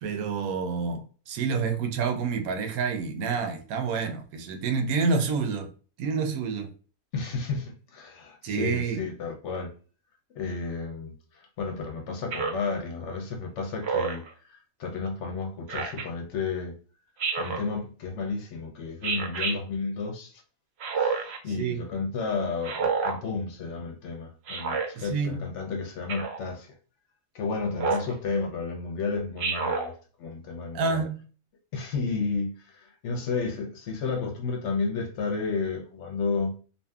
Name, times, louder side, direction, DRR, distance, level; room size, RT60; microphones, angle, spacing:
voice 1, 0.0-5.7 6.0-6.7 8.4-9.0 21.6-21.8 24.9-25.5 30.7-31.2, right 5 dB, 85° right, 1.0 m, -28 dB
voice 2, 7.1-9.7 10.3-16.7 17.4-20.4 20.9-26.7 27.3-31.0 31.7-36.5, left 4 dB, 65° left, 0.8 m, -32 dB
Speech synthesizer, 12.3-12.7 13.8-14.3 15.7-16.1 17.2-17.7 19.0-19.6 20.8-21.4 22.6-23.2 24.5-24.9 26.1-26.4 27.8-28.1 29.4-29.9, right 5 dB, 60° right, 0.7 m, -28 dB
2.6 x 2.6 x 2.2 m
omnidirectional pair, 1.5 m